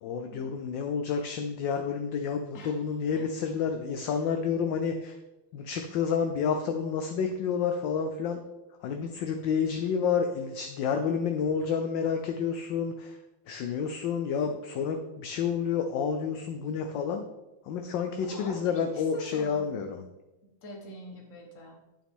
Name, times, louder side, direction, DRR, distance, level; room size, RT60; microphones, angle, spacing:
voice 1, 0.0-5.2 5.5-8.4 8.8-17.2 17.6-20.0, left 6 dB, 70° left, 6 dB, 1.2 m, -30 dB
voice 2, 18.2-18.9 19.1-19.7 20.6-21.8, left 1 dB, 40° left, 1 dB, 1.6 m, -44 dB
8.5 x 7.1 x 3.6 m, 1.0 s
omnidirectional pair, 2.3 m